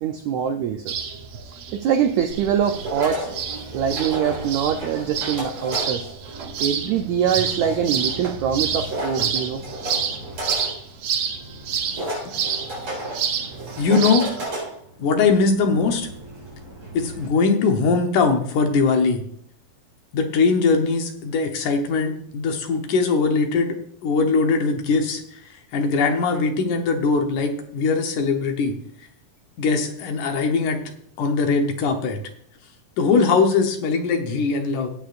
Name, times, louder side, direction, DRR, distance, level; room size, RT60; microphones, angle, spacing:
voice 1, 0.0-1.1 1.7-3.3 3.7-6.1 6.4-9.6, right 8 dB, 85° right, 6 dB, 1.6 m, -24 dB
sound 1, 0.9-14.5, right 7 dB, 65° right, 1.6 m, -29 dB
sound 2, 2.3-17.3, right 1 dB, 35° right, 4.9 m, -34 dB
voice 2, 13.8-14.3 15.0-16.1 16.9-19.2 20.1-23.8 24.0-28.8 29.6-30.8 31.2-32.2 33.0-34.9, left 4 dB, 65° left, 4 dB, 2.4 m, -21 dB
17.0 x 9.0 x 2.5 m, 0.67 s
omnidirectional pair, 4.1 m